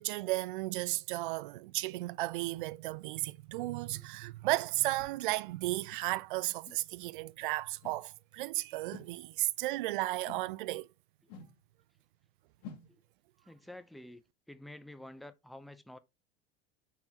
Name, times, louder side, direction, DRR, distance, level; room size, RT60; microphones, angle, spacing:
voice 1, 0.0-10.9, right 19 dB, 55° right, 0.4 m, -34 dB
sound 1, 4.1-4.2 5.0-5.1 5.9-6.0 6.6-6.8 7.8-8.1 8.9-9.2 10.2-10.5 11.3-11.6 12.6-12.9, left 5 dB, 50° left, 1.9 m, -50 dB
voice 2, 13.4-16.0, left 1 dB, ahead, 0.4 m, -50 dB
5.6 x 5.5 x 4.1 m
figure-of-eight pair, 80°, 31 cm